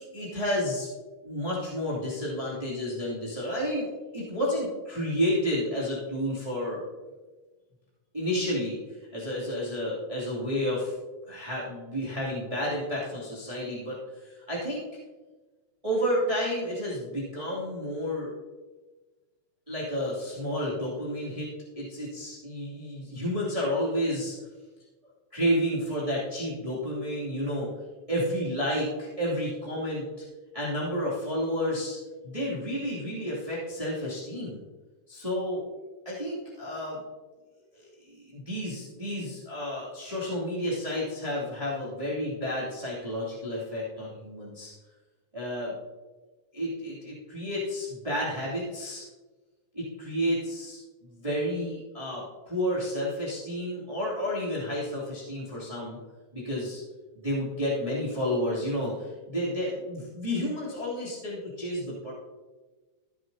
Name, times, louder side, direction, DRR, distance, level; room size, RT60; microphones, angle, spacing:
voice 1, 0.1-0.9 1.2-3.9 4.1-6.8 8.1-8.8 9.1-10.9 11.3-14.0 14.2-14.8 15.8-18.3 19.7-21.5 21.8-24.4 25.3-27.7 28.1-30.2 30.5-32.0 32.2-34.6 35.1-35.6 36.0-37.0 37.7-44.7 45.3-45.7 46.5-49.0 49.7-50.8 51.1-56.0 56.3-56.8 57.1-62.1, equal, 10° right, -7 dB, 2.4 m, -31 dB
14.5 x 7.8 x 2.8 m, 1.3 s
omnidirectional pair, 3.7 m